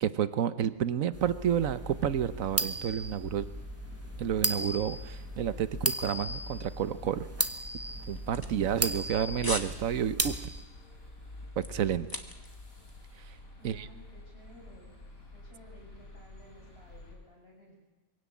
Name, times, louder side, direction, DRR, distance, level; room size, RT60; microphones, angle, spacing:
voice 1, 0.0-3.5 4.2-7.3 8.1-10.5 11.6-12.1 13.6-13.9, right 9 dB, 65° right, 14 dB, 1.3 m, -30 dB
sound 1, 1.1-10.6, right 1 dB, 10° right, 1.0 m, -36 dB
sound 2, 1.4-17.2, left 2 dB, 65° left, 4.6 m, -49 dB
sound 3, 8.0-9.1 9.4-9.8 10.1-10.4 10.8-12.6 12.9-13.0, left 1 dB, 15° left, 1.5 m, -38 dB
voice 2, 13.6-15.0 15.3-17.7, equal, 40° left, -2 dB, 8.0 m, -56 dB
23.0 x 16.5 x 8.5 m, 1.1 s
omnidirectional pair, 1.6 m